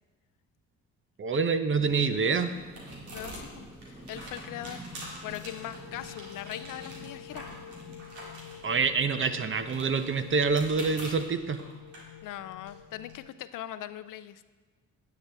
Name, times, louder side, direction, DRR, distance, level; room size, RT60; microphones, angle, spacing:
voice 1, 1.2-2.5 8.6-11.6, right 5 dB, 35° right, 10 dB, 0.7 m, -26 dB
sound 1, 1.4-13.1, right 1 dB, 90° right, 2.1 m, -47 dB
sound 2, 1.8-11.2, right 1 dB, 15° right, 1.5 m, -50 dB
voice 2, 3.1-7.4 12.2-14.4, left 12 dB, 60° left, 13 dB, 0.5 m, -41 dB
sound 3, 4.4-13.3, left 11 dB, 80° left, 0.9 m, -48 dB
9.6 x 8.1 x 3.4 m, 1.4 s
hypercardioid pair, 55°, 36 cm